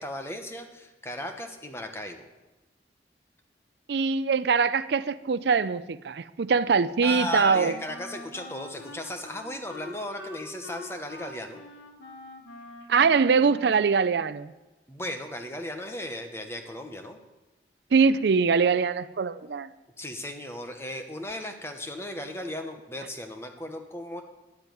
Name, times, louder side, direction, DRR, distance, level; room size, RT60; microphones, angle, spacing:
voice 1, 0.0-2.3 7.0-11.6 14.9-17.2 20.0-24.2, left 1 dB, 15° left, 1.1 m, -36 dB
voice 2, 3.9-7.7 12.9-14.5 17.9-19.7, right 5 dB, 70° right, 0.4 m, -23 dB
Wind instrument woodwind instrument, 7.0-14.4, left 2 dB, 85° left, 1.9 m, -45 dB
11.0 x 7.8 x 9.3 m
head